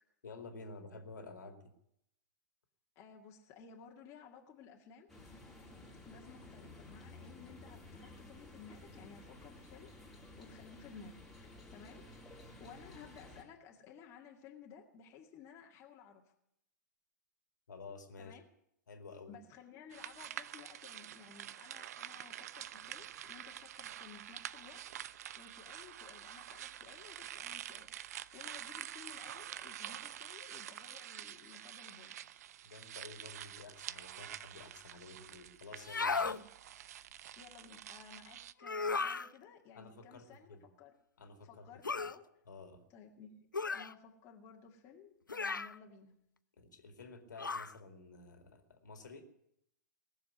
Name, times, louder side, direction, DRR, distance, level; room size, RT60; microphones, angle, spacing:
voice 1, 0.2-1.6 17.7-18.4 18.9-19.4 32.6-36.3 39.7-40.7 41.2-41.7 41.9-42.0 42.5-42.8 46.6-49.2, left 3 dB, 70° left, 6 dB, 2.4 m, -51 dB
voice 2, 3.0-5.1 6.0-9.9 10.4-11.1 11.7-16.2 18.2-18.4 19.3-24.8 25.1-27.9 28.3-32.1 36.2-36.5 37.2-40.9 41.4-42.2 42.9-43.5 43.7-46.1, left 6 dB, 30° left, 0 dB, 2.1 m, -56 dB
sound 1, 5.1-13.4, left 2 dB, ahead, 3.5 m, -54 dB
sound 2, 19.9-38.5, right 11 dB, 55° right, 0.5 m, -47 dB
sound 3, 35.8-36.4 38.6-39.3 41.8-42.2 43.5-43.9 45.3-45.8 47.4-47.7, left 4 dB, 85° left, 0.5 m, -35 dB
19.0 x 7.2 x 9.7 m, 0.76 s
figure-of-eight pair, 110°, 10 cm